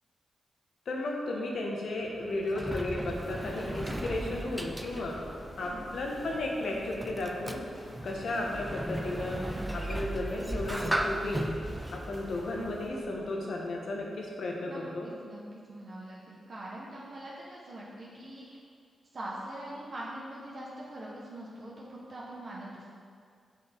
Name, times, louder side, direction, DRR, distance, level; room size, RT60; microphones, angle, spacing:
voice 1, 0.9-5.2 5.6-7.7 8.0-9.4 9.7-11.5 11.9-15.1, left 2 dB, 75° left, -1 dB, 1.1 m, -34 dB
Sliding door, 2.0-13.4, right 1 dB, 10° right, 0.5 m, -37 dB
sound 1, 3.1-12.9, left 1 dB, 20° left, 1.4 m, -49 dB
voice 2, 5.6-5.9 14.6-18.6 19.1-22.9, right 1 dB, 55° right, -6 dB, 1.3 m, -43 dB
5.9 x 5.8 x 4.5 m, 2.2 s
cardioid pair, 55°, 0 cm